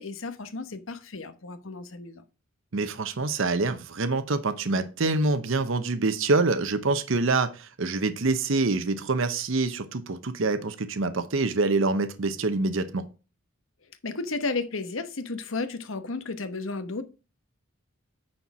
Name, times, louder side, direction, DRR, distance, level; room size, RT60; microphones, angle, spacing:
voice 1, 0.0-2.2 14.0-17.0, left 3 dB, 70° left, 1.1 m, -33 dB
voice 2, 2.7-13.0, right 3 dB, 65° right, 0.8 m, -26 dB
9.7 x 4.5 x 5.9 m
head